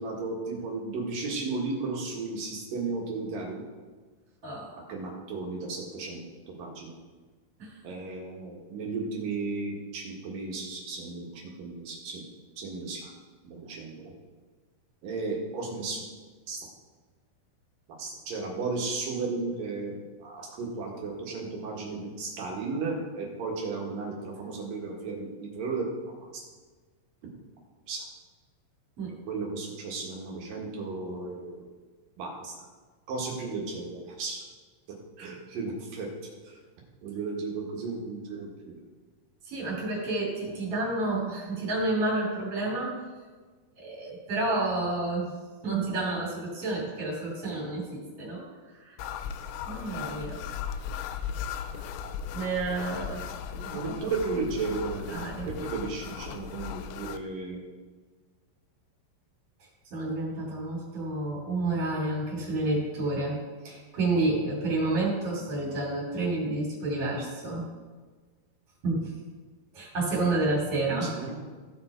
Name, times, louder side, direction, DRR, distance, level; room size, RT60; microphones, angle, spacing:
voice 1, 0.0-3.6 4.7-6.2 6.5-6.9 7.8-12.2 12.6-13.1 13.4-14.1 15.0-16.0 16.5-16.7 17.9-25.9 26.2-26.4 27.9-28.0 29.3-31.6 32.2-32.5 33.1-34.4 35.2-36.1 36.4-36.6 37.0-38.8 52.9-53.1 53.5-55.2 55.5-57.6 70.9-71.6, right 3 dB, 55° right, -2 dB, 2.9 m, -34 dB
voice 2, 39.4-43.0 43.8-45.3 45.6-48.4 48.7-49.0 49.7-50.4 52.3-53.3 53.7-54.1 55.1-55.5 59.9-63.4 63.6-67.7 68.8-69.1 69.7-71.1, right 2 dB, 35° right, -5 dB, 3.4 m, -30 dB
sound 1, 49.0-57.2, left 8 dB, 85° left, 2.6 m, -37 dB
16.5 x 5.9 x 4.4 m, 1.4 s
omnidirectional pair, 5.6 m